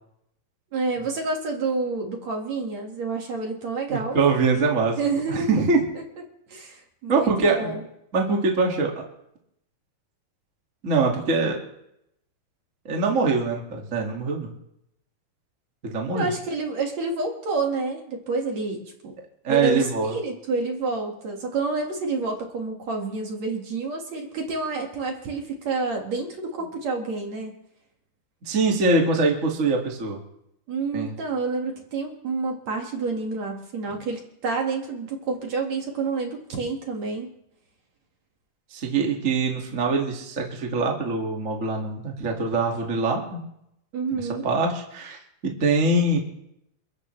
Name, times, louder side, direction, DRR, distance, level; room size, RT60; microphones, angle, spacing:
voice 1, 0.7-4.2 5.0-5.6 6.5-7.8 16.1-19.1 19.5-27.5 30.7-37.3 43.9-44.5, right 3 dB, 50° right, 1 dB, 2.7 m, -28 dB
voice 2, 3.9-5.0 5.3-5.8 7.1-7.8 8.1-9.0 10.8-11.6 12.8-14.5 15.8-16.3 19.4-20.1 28.4-30.2 30.9-31.1 38.7-43.4 44.2-45.2 45.4-46.2, right 3 dB, 30° right, 0 dB, 1.6 m, -23 dB
29.0 x 13.5 x 3.3 m, 0.80 s
omnidirectional pair, 4.6 m